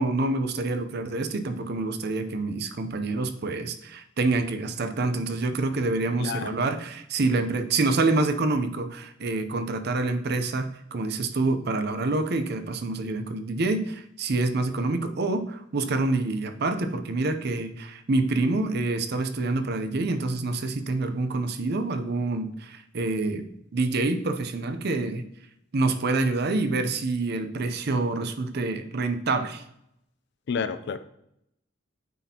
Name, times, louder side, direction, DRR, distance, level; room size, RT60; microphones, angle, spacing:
voice 1, 0.0-25.2 25.7-29.6, right 3 dB, 55° right, 9 dB, 0.6 m, -27 dB
voice 2, 6.2-6.6 30.5-31.0, left 5 dB, 60° left, 12 dB, 0.4 m, -30 dB
9.1 x 4.2 x 2.8 m, 0.78 s
head